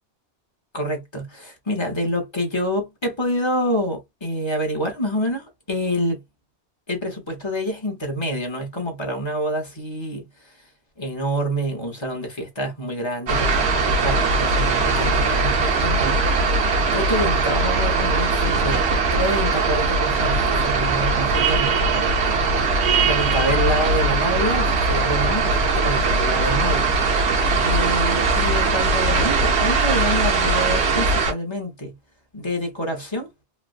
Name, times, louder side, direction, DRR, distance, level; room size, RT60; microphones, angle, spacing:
voice 1, 0.7-6.2 6.9-10.3 11.0-16.2 16.6-18.8 19.1-22.4 23.0-26.8 27.6-31.9 32.3-33.3, equal, 25° left, 1.1 m, -27 dB
sound 1, 13.3-31.3, right 3 dB, 70° right, 1.1 m, -20 dB
3.2 x 2.5 x 2.5 m
omnidirectional pair, 1.2 m